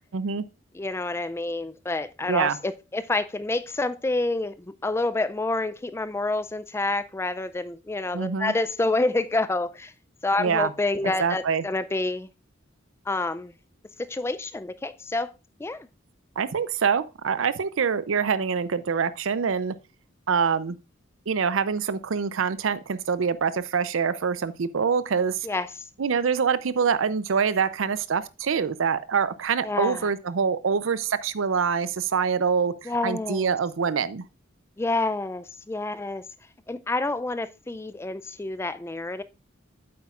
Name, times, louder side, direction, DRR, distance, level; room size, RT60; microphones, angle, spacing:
voice 1, 0.1-0.4 2.3-2.6 8.1-8.5 10.4-10.7 11.2-11.6 16.4-19.7 20.3-20.8 21.3-25.5 26.0-34.2, right 6 dB, 90° right, 0.5 m, -25 dB
voice 2, 0.8-9.9 10.2-12.3 13.1-13.5 14.0-15.3 15.6-15.9 25.4-25.7 29.6-30.1 32.9-33.6 34.8-36.2 36.7-39.2, left 2 dB, 15° left, 0.3 m, -28 dB
8.6 x 7.9 x 2.4 m
head